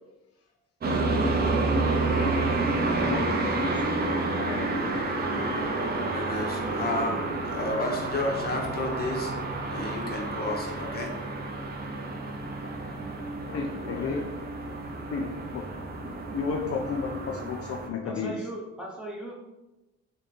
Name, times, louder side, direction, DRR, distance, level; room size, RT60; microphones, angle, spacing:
sound 1, 0.8-17.9, right 2 dB, 30° right, 0.5 m, -29 dB
voice 1, 2.9-3.5 3.8-3.9 4.4-4.9 13.5-14.3 15.1-15.7 16.3-18.3, left 5 dB, 50° left, 1 dB, 0.4 m, -32 dB
voice 2, 5.3-9.3 9.7-11.1 13.5-14.2, left 2 dB, 30° left, 0 dB, 0.9 m, -32 dB
voice 3, 18.0-19.5, right 1 dB, 5° right, -4 dB, 0.8 m, -38 dB
3.2 x 2.2 x 4.0 m, 1.0 s
cardioid pair, 90°, 30 cm